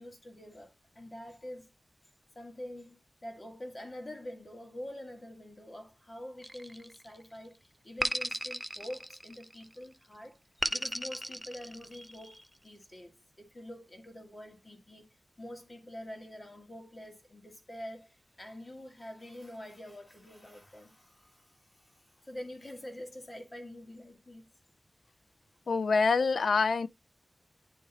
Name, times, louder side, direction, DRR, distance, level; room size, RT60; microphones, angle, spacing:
voice 1, 0.0-1.7 2.4-13.1 13.4-15.1 15.4-24.5, left 1 dB, 30° left, 2.0 m, -46 dB
sound 1, 6.4-7.3 8.0-9.7 10.6-12.3, equal, ahead, 0.3 m, -35 dB
voice 2, 25.7-26.9, left 4 dB, 75° left, 0.4 m, -26 dB
10.0 x 3.8 x 2.8 m
wide cardioid pair, 115°, 0 cm